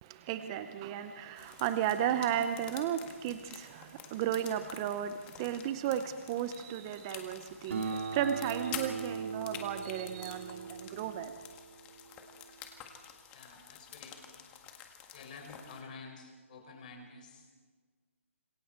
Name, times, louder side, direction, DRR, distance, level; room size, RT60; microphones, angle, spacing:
voice 1, 0.0-11.3, right 10 dB, 20° right, 10 dB, 0.7 m, -34 dB
sound 1, 1.4-15.8, left 9 dB, 15° left, 1.6 m, -49 dB
Acoustic guitar, 7.7-12.5, right 4 dB, 65° right, 3.0 m, -40 dB
voice 2, 13.3-14.5 15.1-17.5, left 4 dB, 35° left, 2 dB, 4.8 m, -50 dB
26.5 x 22.0 x 4.5 m, 1.4 s
hypercardioid pair, 160°, 8 cm